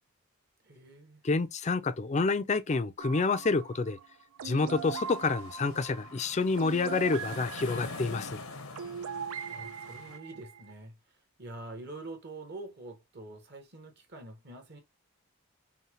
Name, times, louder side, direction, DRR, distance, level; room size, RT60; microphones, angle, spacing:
voice 1, 0.6-1.2 9.5-14.8, right 2 dB, 50° right, 1.2 m, -46 dB
voice 2, 1.2-4.0 4.4-8.4, left 3 dB, 35° left, 0.4 m, -28 dB
sound 1, 3.0-10.7, right 6 dB, 85° right, 0.5 m, -41 dB
sound 2, 4.4-10.2, left 3 dB, 75° left, 0.7 m, -45 dB
5.6 x 2.2 x 2.9 m
head